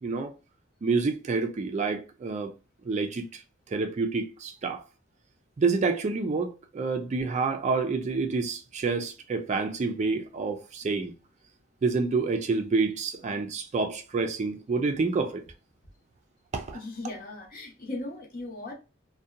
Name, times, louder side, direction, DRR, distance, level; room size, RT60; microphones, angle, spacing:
voice 1, 0.0-0.3 0.8-2.5 2.8-3.4 3.7-4.8 5.6-11.1 11.8-15.4 16.5-16.8, right 4 dB, 35° right, 0.3 m, -28 dB
voice 2, 16.7-18.7, left 2 dB, 45° left, 0.8 m, -37 dB
2.7 x 2.2 x 2.3 m
head